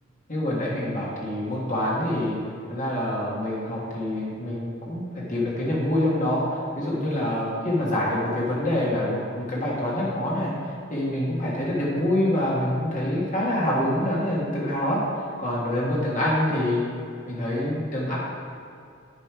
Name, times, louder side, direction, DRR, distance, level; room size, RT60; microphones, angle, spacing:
voice 1, 0.3-2.4 2.7-10.5 10.9-15.0 15.4-16.8 17.3-18.2, left 1 dB, 40° left, -6 dB, 1.6 m, -26 dB
9.6 x 5.1 x 4.8 m, 2.3 s
head